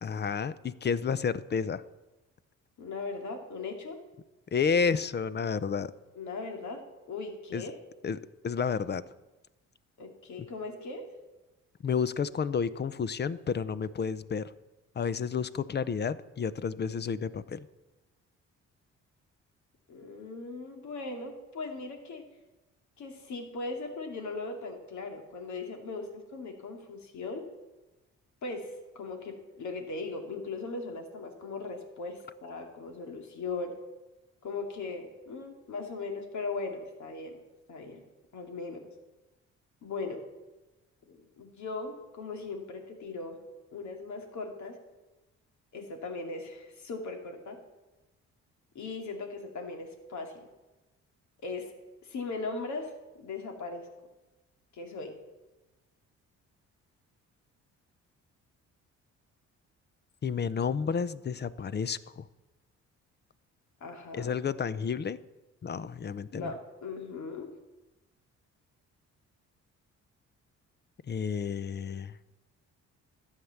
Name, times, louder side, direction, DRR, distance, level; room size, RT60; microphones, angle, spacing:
voice 1, 0.0-1.8 4.5-5.9 7.5-7.6 8.0-9.0 10.4-10.5 11.8-14.5 15.0-17.7 60.2-62.3 64.1-65.2 65.6-66.5 71.1-72.1, left 6 dB, 35° left, 16 dB, 0.6 m, -31 dB
voice 2, 2.8-4.0 6.2-7.7 10.0-11.0 19.9-22.2 23.0-27.5 28.4-28.7 28.9-33.8 34.4-37.4 37.7-38.0 38.3-38.9 39.8-40.2 41.1-43.4 43.7-44.8 45.7-47.6 48.7-50.5 51.4-51.7 52.0-52.9 53.2-53.9 54.7-55.1 63.8-64.3 66.3-67.5, left 3 dB, 70° left, 4 dB, 2.5 m, -38 dB
13.0 x 8.2 x 7.1 m, 1.1 s
cardioid pair, 90°, 30 cm